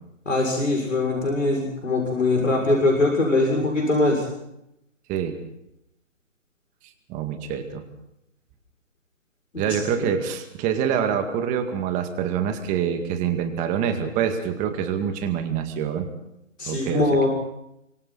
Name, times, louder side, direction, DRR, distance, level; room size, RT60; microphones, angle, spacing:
voice 1, 0.3-4.2 9.5-9.8 16.6-17.3, left 2 dB, 80° left, 0 dB, 6.6 m, -22 dB
voice 2, 5.1-5.4 7.1-7.8 9.6-16.1 16.7-17.3, right 8 dB, 20° right, 7 dB, 2.2 m, -26 dB
28.5 x 25.0 x 4.2 m, 0.83 s
figure-of-eight pair, 140°, 37 cm